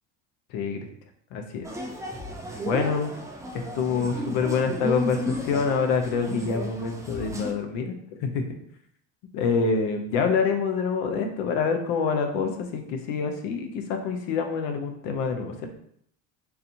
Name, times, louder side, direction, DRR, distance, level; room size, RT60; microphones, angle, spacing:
voice 1, 0.5-0.9 1.3-1.7 2.7-3.2 3.7-8.4 9.3-15.7, left 5 dB, 80° left, 5 dB, 0.8 m, -26 dB
sound 1, 1.6-7.5, equal, 10° right, 0.3 m, -33 dB
4.0 x 2.7 x 2.8 m, 0.68 s
supercardioid pair, 105°, 42 cm